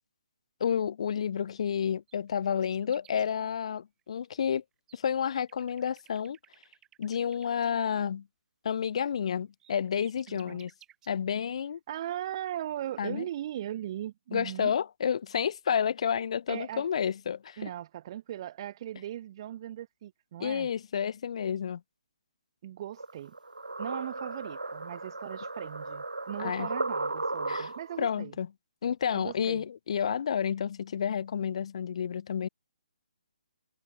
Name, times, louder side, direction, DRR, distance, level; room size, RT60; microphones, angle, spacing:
voice 1, 0.6-4.6 4.9-6.4 7.0-8.3 8.6-10.7 11.1-11.8 13.0-13.3 14.3-17.7 20.4-21.8 26.4-26.7 27.5-27.7 28.0-28.5 28.8-32.5, left 8 dB, 45° left, 0.3 m, -30 dB
sound 1, 1.6-1.7 1.9-3.3 4.0-4.6 4.9-7.7 9.2-9.3 9.6-11.1 12.5-12.6 12.8-13.0, right 12 dB, 15° right, 2.9 m, -59 dB
voice 2, 10.3-10.6 11.9-14.7 16.5-16.9 17.6-20.7 22.6-23.3 23.8-28.4 29.1-29.6, right 12 dB, 35° right, 0.7 m, -38 dB
sound 2, 23.0-28.0, right 2 dB, 85° right, 0.4 m, -35 dB
figure-of-eight pair, 135°, 4 cm